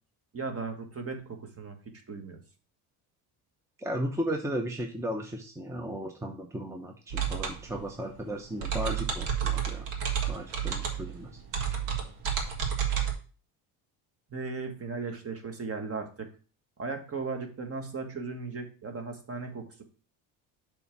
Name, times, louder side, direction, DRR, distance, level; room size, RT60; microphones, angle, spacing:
voice 1, 0.3-1.8 2.1-2.4 14.3-16.3 16.8-19.8, right 4 dB, 30° right, 5 dB, 1.6 m, -36 dB
voice 2, 3.8-9.9 10.3-11.4, equal, 5° right, 3 dB, 0.8 m, -35 dB
sound 1, 7.1-13.1, right 8 dB, 80° right, 1.8 m, -31 dB
6.9 x 3.5 x 6.0 m, 0.38 s
supercardioid pair, 100°, 44 cm